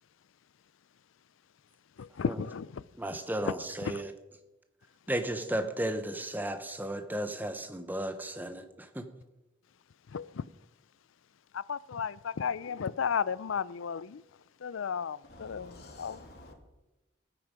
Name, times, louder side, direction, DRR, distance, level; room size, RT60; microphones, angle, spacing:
voice 1, 2.2-2.6 10.1-10.2 11.7-12.1 12.4-14.0 14.6-15.7 16.0-16.2, left 6 dB, 80° left, 0.4 m, -32 dB
voice 2, 3.0-4.1 5.1-9.0, right 1 dB, 10° right, 0.9 m, -34 dB
voice 3, 15.3-16.5, left 1 dB, 55° left, 2.5 m, -50 dB
15.0 x 9.2 x 5.1 m
head